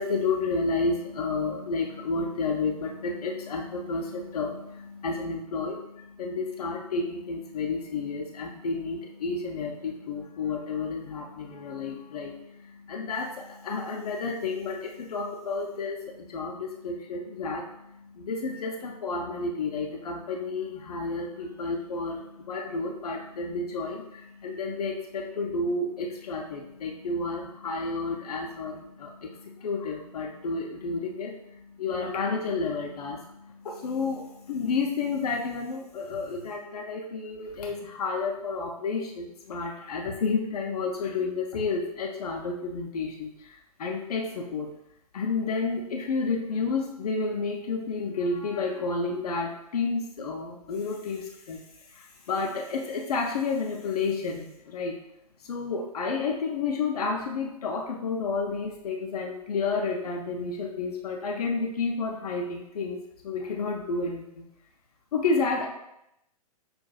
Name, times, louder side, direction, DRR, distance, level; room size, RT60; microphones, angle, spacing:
voice 1, 0.0-44.7 45.1-51.6 51.9-54.9 55.4-63.0 63.2-64.4 65.1-65.7, left 4 dB, 75° left, 0 dB, 0.6 m, -31 dB
6.3 x 2.5 x 2.3 m, 0.84 s
hypercardioid pair, 120°, 20 cm